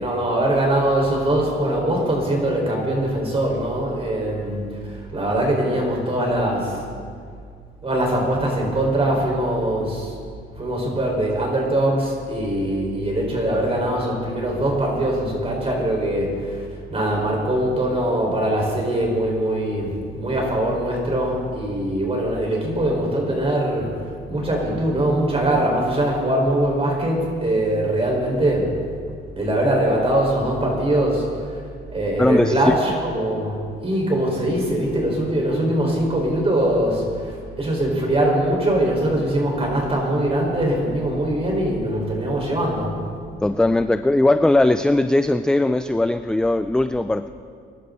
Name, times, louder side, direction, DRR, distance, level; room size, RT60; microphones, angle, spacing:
voice 1, 0.0-4.6 5.1-6.7 7.8-10.1 10.6-16.3 16.9-23.9 24.3-28.7 29.4-31.3 31.9-37.0 37.6-42.9, right 1 dB, 30° right, -1 dB, 5.0 m, -22 dB
voice 2, 32.2-32.7 43.4-47.3, left 2 dB, 5° left, 10 dB, 0.4 m, -19 dB
23.0 x 12.0 x 4.1 m, 2.2 s
cardioid pair, 90°, 20 cm